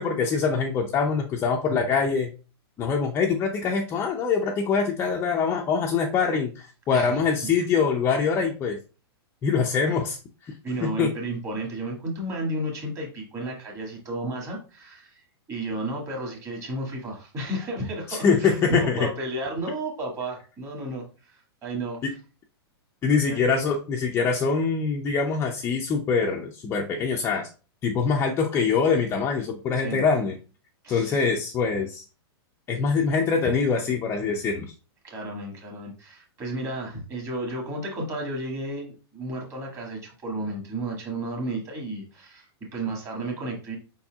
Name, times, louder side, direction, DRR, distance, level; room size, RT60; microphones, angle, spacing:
voice 1, 0.0-2.3 2.8-8.8 9.4-10.2 10.4-10.5 10.8-11.1 18.1-19.1 22.0-22.1 23.0-27.5 27.8-30.4 30.9-32.0 32.7-34.7, left 5 dB, 20° left, 1 dB, 0.4 m, -24 dB
voice 2, 10.6-15.2 15.5-22.1 23.3-23.5 29.8-30.0 30.8-31.2 35.0-43.8, right 1 dB, 20° right, -1 dB, 1.8 m, -33 dB
5.2 x 4.3 x 2.3 m, 0.34 s
hypercardioid pair, 150°, 14 cm